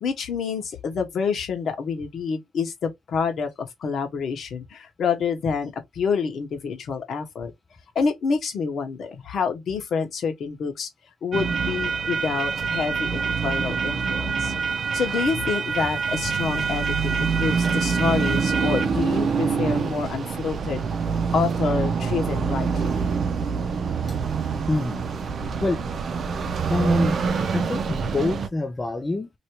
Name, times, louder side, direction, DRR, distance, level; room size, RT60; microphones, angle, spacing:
voice 1, 0.0-7.5 7.9-10.9 11.2-14.5 14.9-20.8 21.3-23.0, left 5 dB, 65° left, 1.3 m, -27 dB
sound 1, 11.3-28.5, right 5 dB, 50° right, 0.6 m, -25 dB
voice 2, 24.7-25.0 25.6-25.8 26.7-27.2 27.5-29.3, left 2 dB, 20° left, 0.4 m, -26 dB
3.0 x 2.8 x 3.0 m
cardioid pair, 90°, 0 cm